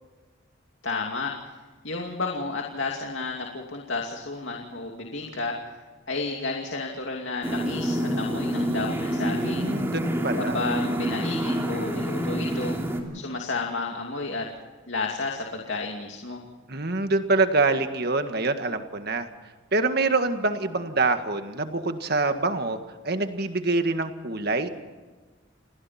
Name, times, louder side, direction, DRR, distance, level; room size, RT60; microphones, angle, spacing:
voice 1, 0.8-1.3 1.8-5.6 6.1-9.7 10.3-12.8 13.1-14.5 14.9-16.4, left 3 dB, 70° left, 0 dB, 2.6 m, -31 dB
sound 1, 7.4-13.0, equal, 15° right, 3.0 m, -27 dB
voice 2, 9.4-10.6 16.7-19.3 19.7-22.8 23.0-24.7, right 3 dB, 50° right, 7 dB, 1.8 m, -25 dB
29.5 x 20.0 x 4.4 m, 1.3 s
head